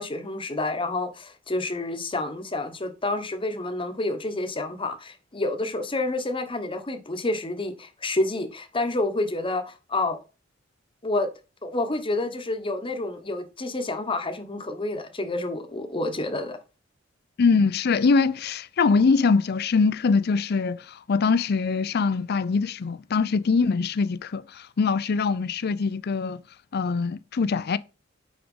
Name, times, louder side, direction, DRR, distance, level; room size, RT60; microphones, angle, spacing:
voice 1, 0.0-10.2 11.0-11.3 11.6-16.6, left 2 dB, 25° left, 1.1 m, -29 dB
voice 2, 17.4-26.4 26.7-27.8, left 4 dB, 55° left, 0.5 m, -23 dB
6.0 x 5.0 x 5.4 m
head